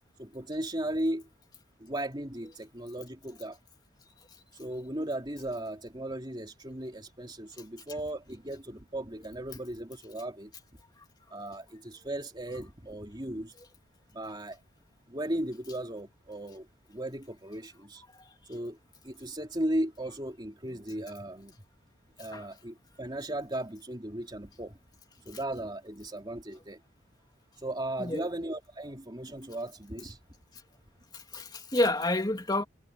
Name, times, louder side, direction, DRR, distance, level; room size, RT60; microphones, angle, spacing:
voice 1, 0.2-1.3 1.8-3.6 4.6-10.5 11.3-13.5 14.1-14.6 15.1-18.0 18.5-18.8 19.0-21.6 22.2-24.8 25.2-26.8 27.6-30.2, right 1 dB, 20° right, 3.1 m, -36 dB
voice 2, 31.1-32.6, left 1 dB, 20° left, 3.1 m, -29 dB
head